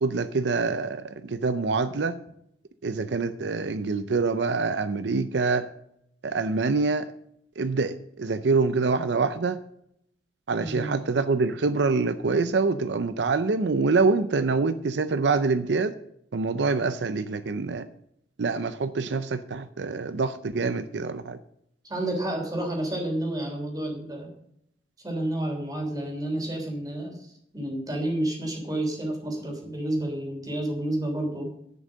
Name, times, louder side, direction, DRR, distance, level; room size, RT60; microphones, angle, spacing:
voice 1, 0.0-2.2 2.8-5.7 6.2-7.1 7.6-9.6 10.5-15.9 16.3-17.9 18.4-21.4, right 4 dB, 80° right, 0.6 m, -25 dB
voice 2, 10.6-11.0 21.8-24.3 25.0-31.5, right 1 dB, 20° right, 3.3 m, -30 dB
11.0 x 6.6 x 6.2 m
head